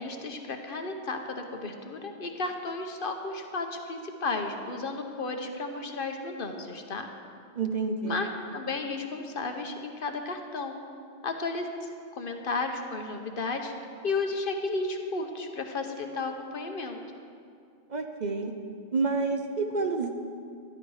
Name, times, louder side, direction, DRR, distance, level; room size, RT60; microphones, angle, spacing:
voice 1, 0.0-7.1 8.0-10.8 11.2-11.7 12.2-13.7 14.0-17.0, left 3 dB, 55° left, 5 dB, 1.1 m, -33 dB
voice 2, 7.6-8.2 17.9-18.5 18.9-20.1, right 4 dB, 45° right, 4 dB, 0.7 m, -29 dB
12.5 x 12.0 x 4.8 m, 2.4 s
omnidirectional pair, 1.1 m